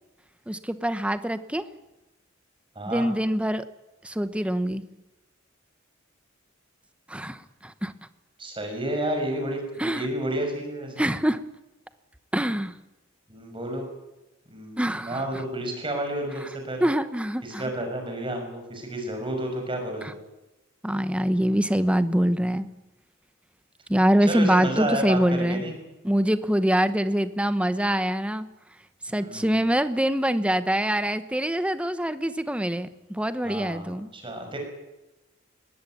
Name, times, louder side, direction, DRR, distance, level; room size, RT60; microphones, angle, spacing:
voice 1, 0.5-1.6 2.8-3.6 4.0-4.8 7.1-7.9 9.8-10.1 11.0-11.4 12.3-12.8 14.8-15.4 16.8-17.6 20.0-20.1 20.8-22.7 23.9-25.6 26.0-28.5 29.1-34.1, equal, 5° right, 12 dB, 1.0 m, -24 dB
voice 2, 8.4-11.1 13.3-13.9 14.5-16.9 17.4-20.2 24.2-25.7 29.1-29.7 33.4-34.6, right 1 dB, 25° right, 4 dB, 5.9 m, -31 dB
20.5 x 16.5 x 9.4 m, 1.0 s
head